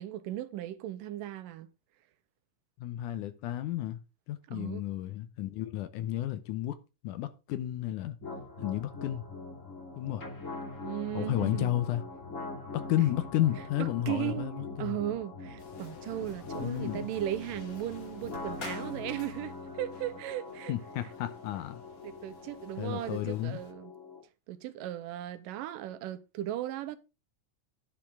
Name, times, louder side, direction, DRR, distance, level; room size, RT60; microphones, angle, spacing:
voice 1, 0.0-1.7 4.5-4.8 10.8-11.7 13.8-20.7 22.0-23.9 24.5-27.0, right 13 dB, 80° right, 2.4 m, -37 dB
voice 2, 2.8-4.0 4.3-6.8 7.0-8.2 8.6-9.2 10.0-10.2 11.1-12.0 12.9-15.0 16.6-17.1 20.7-21.8 22.8-23.6, left 13 dB, 75° left, 2.2 m, -32 dB
sound 1, 8.2-24.2, left 3 dB, 25° left, 2.8 m, -43 dB
sound 2, 15.6-23.7, left 4 dB, 50° left, 1.0 m, -51 dB
10.5 x 9.9 x 3.6 m
omnidirectional pair, 4.0 m